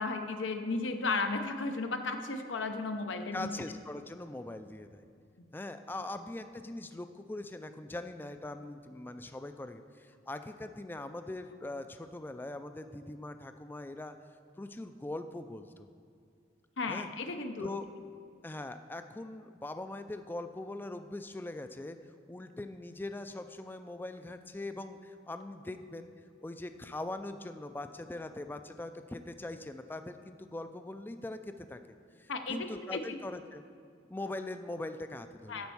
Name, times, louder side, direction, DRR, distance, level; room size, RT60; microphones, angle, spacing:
voice 1, 0.0-3.5 5.4-5.5 16.8-17.7 32.3-33.2 35.5-35.7, left 3 dB, 85° left, 6 dB, 0.7 m, -34 dB
voice 2, 3.3-5.0 5.5-14.2 14.6-15.9 16.9-17.1 17.6-17.9 18.4-22.0 22.3-26.1 26.4-31.8 32.2-33.6 34.1-35.7, left 2 dB, 10° left, 9 dB, 0.3 m, -41 dB
10.5 x 4.4 x 7.0 m, 2.3 s
head